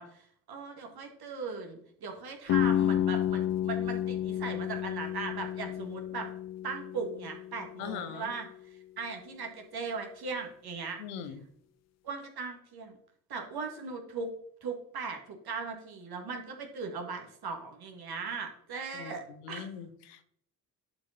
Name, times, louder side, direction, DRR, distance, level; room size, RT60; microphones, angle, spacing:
voice 1, 0.0-6.3 6.6-11.0 12.0-13.0 13.3-14.3 14.6-19.7, right 4 dB, 50° right, 3 dB, 2.3 m, -39 dB
sound 1, 2.5-8.3, left 11 dB, 35° left, 0.4 m, -31 dB
voice 2, 7.8-8.3 11.0-11.4 18.9-19.2 19.4-20.2, left 8 dB, 75° left, 9 dB, 1.1 m, -40 dB
11.0 x 4.9 x 4.2 m, 0.66 s
figure-of-eight pair, 40°, 47 cm